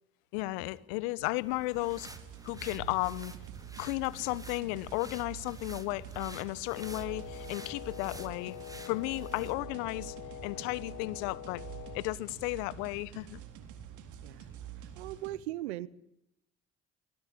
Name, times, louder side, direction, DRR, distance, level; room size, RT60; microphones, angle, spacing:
voice 1, 0.3-2.1 2.4-3.3 3.8-8.6 8.9-10.1 10.4-11.6 11.9-13.4, left 21 dB, 75° left, 1.2 m, -34 dB
sound 1, 1.3-9.6, right 1 dB, 10° right, 3.7 m, -52 dB
sound 2, 1.8-15.3, right 9 dB, 65° right, 4.0 m, -47 dB
Wind instrument woodwind instrument, 6.7-12.1, left 13 dB, 60° left, 1.7 m, -45 dB
voice 2, 15.0-15.9, right 15 dB, 85° right, 1.1 m, -38 dB
23.5 x 22.5 x 9.8 m
hypercardioid pair, 50°, 32 cm